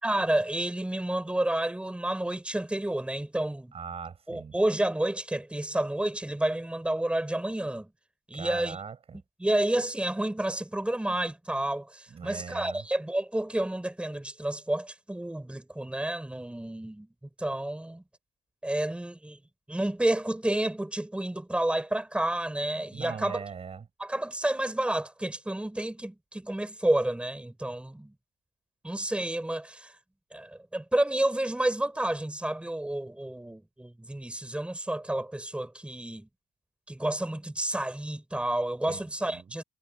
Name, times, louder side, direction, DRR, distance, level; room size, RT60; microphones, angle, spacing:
voice 1, 0.0-3.7 4.3-7.9 8.3-8.8 9.4-17.1 17.4-18.0 18.6-19.4 19.7-23.4 24.0-28.1 28.8-29.9 30.3-36.3 36.9-39.6, right 1 dB, 5° right, 5.5 m, -30 dB
voice 2, 3.7-4.5 8.3-9.2 12.1-12.8 22.9-23.8 38.9-39.0 39.3-39.5, right 6 dB, 35° right, 7.0 m, -40 dB
cardioid pair, 110°, 17 cm